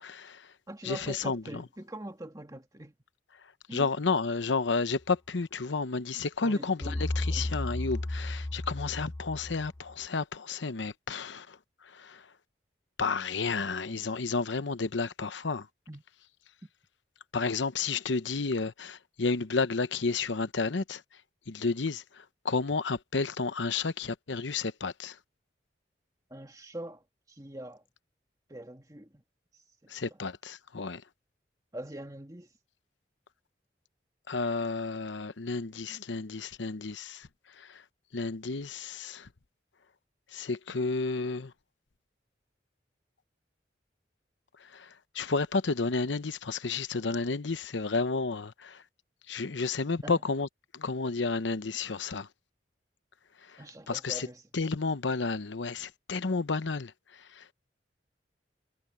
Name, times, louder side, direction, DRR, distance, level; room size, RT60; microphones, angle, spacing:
voice 1, 0.0-0.5 0.8-1.6 3.7-11.6 11.9-12.2 13.0-15.7 17.3-21.0 21.5-25.2 29.9-31.0 34.3-37.3 37.6-37.8 38.1-39.3 40.3-41.5 44.7-44.9 45.1-48.8 49.3-50.5 50.7-52.3 53.9-54.3 54.5-56.9 57.4-57.5, left 4 dB, 80° left, 0.9 m, -31 dB
voice 2, 0.7-2.9 3.7-3.9 6.4-7.5 15.9-16.0 26.3-27.8 28.5-29.2 29.8-29.9 31.7-32.5 50.0-50.2 53.6-54.4, right 1 dB, 20° right, 2.0 m, -43 dB
sound 1, 6.8-9.9, left 1 dB, 15° left, 0.5 m, -33 dB
head